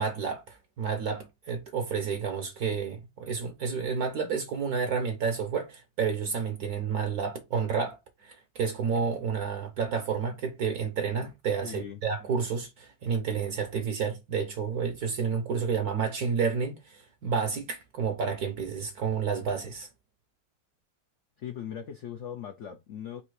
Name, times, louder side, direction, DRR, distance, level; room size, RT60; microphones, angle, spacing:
voice 1, 0.0-19.9, right 6 dB, 65° right, 1.1 m, -30 dB
voice 2, 11.6-12.0 21.4-23.2, left 9 dB, 75° left, 0.6 m, -39 dB
4.2 x 2.7 x 4.6 m
omnidirectional pair, 2.0 m